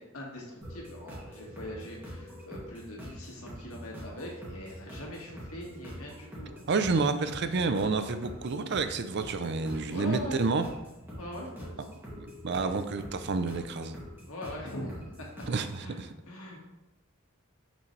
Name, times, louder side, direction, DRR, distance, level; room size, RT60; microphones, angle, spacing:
voice 1, 0.1-6.6 9.8-10.4 11.2-12.0 14.3-15.3 15.8-16.0 16.3-16.6, left 1 dB, 75° left, -1 dB, 1.8 m, -42 dB
sound 1, 0.6-15.8, equal, 10° right, 1.9 m, -45 dB
voice 2, 6.7-10.6 12.2-14.0 15.5-16.1, right 4 dB, 50° right, 9 dB, 0.5 m, -29 dB
6.9 x 6.1 x 3.3 m, 0.98 s
head